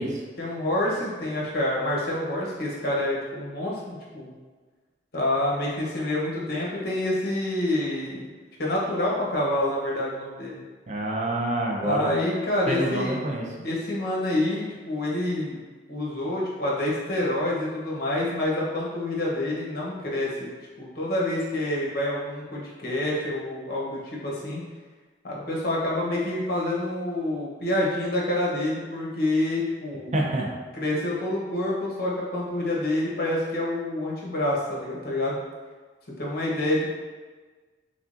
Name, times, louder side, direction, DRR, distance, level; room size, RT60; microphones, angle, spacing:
voice 1, 0.4-4.3 5.1-8.3 8.6-10.6 11.8-13.1 13.6-15.6 15.9-20.5 20.8-24.6 25.2-30.1 30.7-35.4 36.2-36.8, left 1 dB, 55° left, -4 dB, 0.9 m, -27 dB
voice 2, 10.9-12.1 12.7-13.5 30.1-30.5, right 1 dB, 40° right, -2 dB, 0.5 m, -27 dB
3.6 x 3.4 x 2.5 m, 1.4 s
head